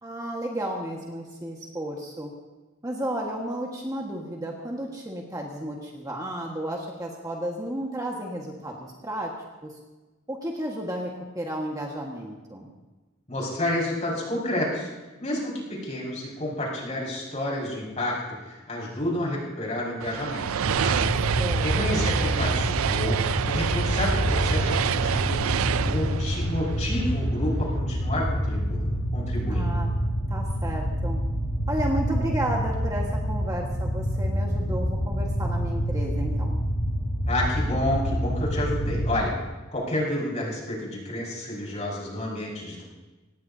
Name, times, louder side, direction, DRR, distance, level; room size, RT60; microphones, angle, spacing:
voice 1, 0.0-2.3 2.8-9.3 9.6-9.7 10.3-12.7 21.4-22.1 29.5-29.9 30.3-31.2 31.7-36.6, right 1 dB, 15° right, -1 dB, 1.6 m, -32 dB
voice 2, 13.3-14.9 15.2-18.1 18.4-20.5 20.7-21.0 21.3-29.7 37.3-39.3 39.7-42.8, left 1 dB, 35° left, -4 dB, 5.7 m, -30 dB
sound 1, 20.0-27.4, right 8 dB, 75° right, 0.4 m, -28 dB
sound 2, 20.6-39.2, equal, 55° left, 7.4 m, -27 dB
25.0 x 18.5 x 2.8 m, 1.2 s
head